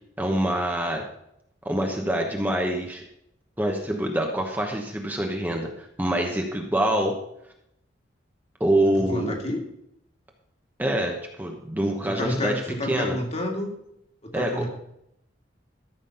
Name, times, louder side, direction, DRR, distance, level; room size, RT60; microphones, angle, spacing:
voice 1, 0.2-1.1 1.6-3.0 3.6-7.2 8.6-9.4 10.8-12.6 12.9-13.2 14.3-14.7, right 1 dB, 10° right, 2 dB, 1.1 m, -25 dB
voice 2, 9.0-9.6 12.1-13.7 14.2-14.7, left 1 dB, 40° left, 1 dB, 2.2 m, -30 dB
13.0 x 6.1 x 5.7 m, 0.77 s
head